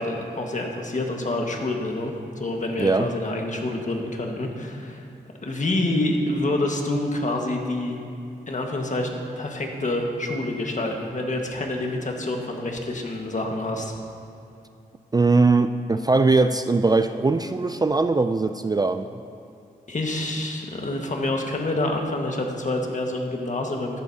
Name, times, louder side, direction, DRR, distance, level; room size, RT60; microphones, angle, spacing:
voice 1, 0.0-5.1 5.4-8.0 8.5-13.9 19.9-24.0, left 2 dB, 45° left, 1 dB, 1.6 m, -27 dB
voice 2, 2.8-3.1 15.1-19.1, right 3 dB, 25° right, 9 dB, 0.4 m, -20 dB
14.0 x 10.5 x 2.8 m, 2.6 s
cardioid pair, 55°, 17 cm